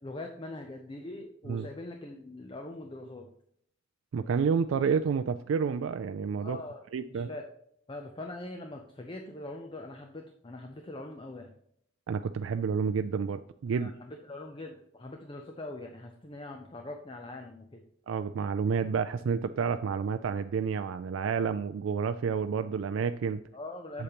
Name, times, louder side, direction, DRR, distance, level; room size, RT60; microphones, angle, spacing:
voice 1, 0.0-3.3 6.4-6.8 7.1-7.5 7.9-11.5 13.7-17.8 23.5-24.0, left 2 dB, 25° left, 4 dB, 0.6 m, -42 dB
voice 2, 4.1-6.6 6.9-7.3 12.1-13.9 18.1-23.4, right 6 dB, 90° right, 9 dB, 0.3 m, -29 dB
8.3 x 6.9 x 2.9 m, 0.70 s
head